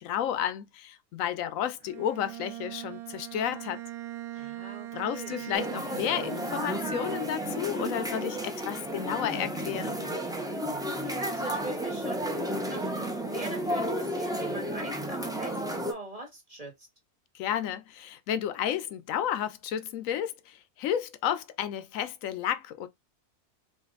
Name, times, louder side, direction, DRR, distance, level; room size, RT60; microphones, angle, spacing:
voice 1, 0.0-3.8 4.9-10.1 17.3-22.9, left 10 dB, 70° left, 0.9 m, -32 dB
Bowed string instrument, 1.8-7.9, right 15 dB, 80° right, 1.1 m, -41 dB
voice 2, 4.3-5.5 11.0-16.7, right 2 dB, 25° right, 1.8 m, -41 dB
sound 1, 5.5-15.9, equal, 5° right, 0.4 m, -32 dB
4.9 x 2.5 x 3.9 m
omnidirectional pair, 1.6 m